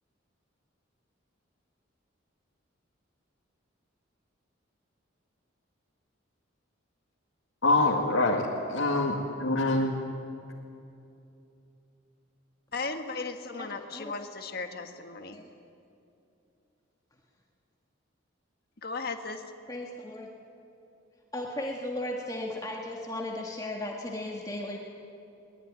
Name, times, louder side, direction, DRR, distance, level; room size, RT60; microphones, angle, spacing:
voice 1, 7.6-9.9, left 2 dB, 80° left, -3 dB, 2.1 m, -25 dB
voice 2, 12.7-15.4 18.8-19.4, left 4 dB, 50° left, 6 dB, 1.6 m, -36 dB
voice 3, 13.6-14.2 15.3-15.5 19.7-20.3 21.3-24.8, left 1 dB, 20° left, -1 dB, 1.8 m, -36 dB
21.5 x 20.0 x 9.7 m, 2.7 s
head